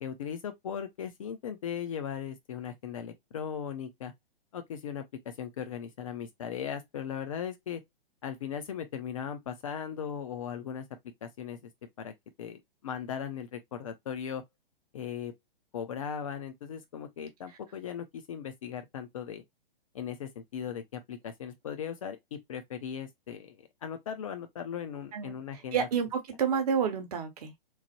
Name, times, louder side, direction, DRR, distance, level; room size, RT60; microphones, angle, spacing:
voice 1, 0.0-4.1 4.5-5.0 5.4-7.8 8.2-10.9 11.2-11.7 12.0-12.1 12.4-14.4 14.9-15.3 15.7-19.4 19.9-25.9, left 8 dB, 35° left, 0.4 m, -38 dB
voice 2, 25.1-27.6, right 7 dB, 40° right, 0.8 m, -30 dB
3.1 x 2.0 x 2.8 m
figure-of-eight pair, 115°, 29 cm